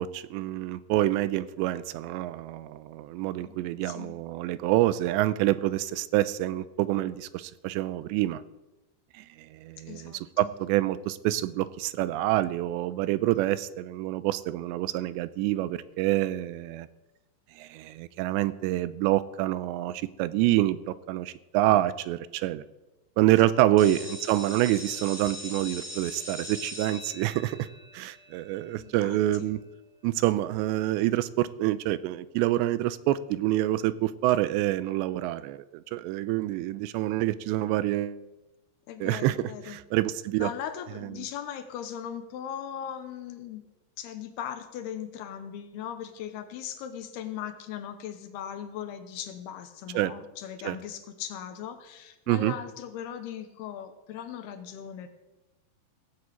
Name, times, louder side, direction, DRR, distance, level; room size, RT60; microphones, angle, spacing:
voice 1, 0.0-8.4 9.2-16.9 17.6-22.6 23.2-27.7 27.9-29.6 30.0-38.2 39.0-40.5 49.9-50.1 50.6-50.8 52.3-52.5, right 15 dB, 85° right, 15 dB, 2.8 m, -27 dB
voice 2, 3.4-4.2 9.9-10.5 23.3-24.0 28.8-29.5 38.9-39.8 40.4-43.6 44.0-55.1, left 9 dB, 75° left, 8 dB, 2.7 m, -39 dB
sound 1, 23.8-29.4, left 1 dB, 5° right, 1.8 m, -42 dB
17.0 x 7.7 x 8.2 m, 1.0 s
omnidirectional pair, 5.1 m